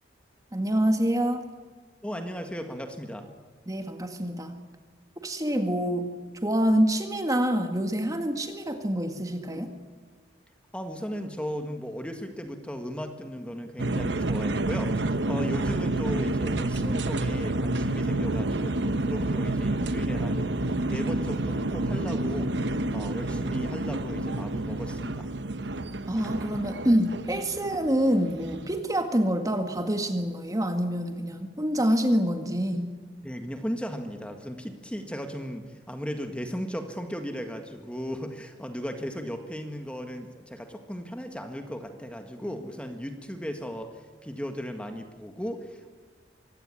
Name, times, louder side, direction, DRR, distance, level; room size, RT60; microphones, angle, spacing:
voice 1, 0.5-1.4 3.7-4.6 5.2-6.2 6.4-9.7 26.1-32.9, equal, 20° right, 6 dB, 1.8 m, -26 dB
voice 2, 2.0-3.3 10.7-20.6 20.8-22.6 22.9-25.3 33.2-45.9, equal, 5° left, 5 dB, 1.8 m, -36 dB
sound 1, 13.8-28.8, right 2 dB, 75° right, 1.0 m, -29 dB
24.5 x 16.5 x 9.9 m, 1.4 s
head